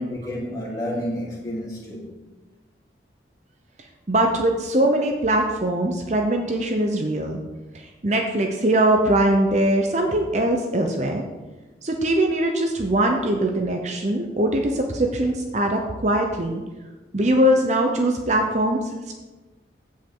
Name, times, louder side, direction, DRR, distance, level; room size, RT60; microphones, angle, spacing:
voice 1, 0.0-2.2, equal, 20° left, -8 dB, 3.6 m, -30 dB
voice 2, 4.1-7.4 8.0-11.2 11.8-16.6 17.1-18.8, right 1 dB, 40° right, 3 dB, 0.8 m, -21 dB
15.5 x 5.4 x 3.8 m, 1.2 s
head